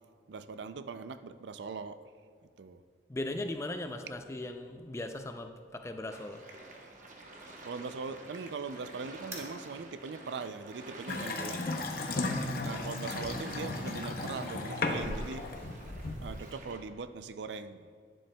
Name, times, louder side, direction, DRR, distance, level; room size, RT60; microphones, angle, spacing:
voice 1, 0.3-2.0 2.6-2.8 7.7-11.7 12.6-15.5 16.2-17.9, right 4 dB, 70° right, 12 dB, 0.4 m, -41 dB
voice 2, 3.1-6.4 12.1-12.5, left 1 dB, 15° left, 7 dB, 0.4 m, -38 dB
sound 1, 6.1-16.8, right 2 dB, 40° right, 1.0 m, -49 dB
sound 2, 9.2-14.4, right 1 dB, 15° right, 1.4 m, -52 dB
Water tap faucet / Sink (filling or washing) / Bathtub (filling or washing), 11.1-16.5, left 2 dB, 50° left, 0.8 m, -35 dB
11.5 x 10.0 x 2.3 m, 2.1 s
head